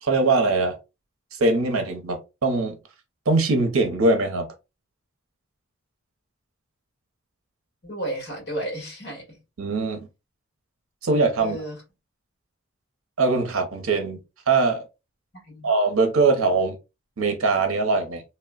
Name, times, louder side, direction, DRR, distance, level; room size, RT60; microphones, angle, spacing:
voice 1, 0.0-0.8 1.3-2.8 3.3-4.5 9.6-10.1 11.0-11.6 13.2-14.2 14.5-14.8 15.6-16.8 17.2-18.2, right 3 dB, 80° right, 0.7 m, -22 dB
voice 2, 7.8-9.4 11.4-11.8 15.3-15.7, right 1 dB, 50° left, 1.6 m, -33 dB
3.0 x 2.1 x 2.3 m
head